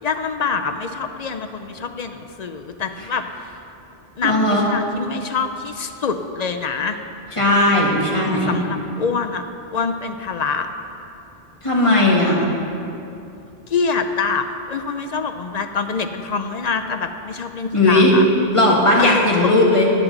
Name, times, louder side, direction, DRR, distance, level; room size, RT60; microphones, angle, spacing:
voice 1, 0.0-3.3 4.2-7.0 8.1-9.4 9.7-10.7 13.7-18.3 19.0-19.5, left 5 dB, 50° left, 7 dB, 0.5 m, -25 dB
voice 2, 4.2-4.7 7.4-8.5 11.6-12.4 17.7-18.1 18.5-19.9, left 2 dB, 30° left, -4 dB, 1.8 m, -16 dB
18.0 x 7.3 x 3.9 m, 2.8 s
omnidirectional pair, 1.1 m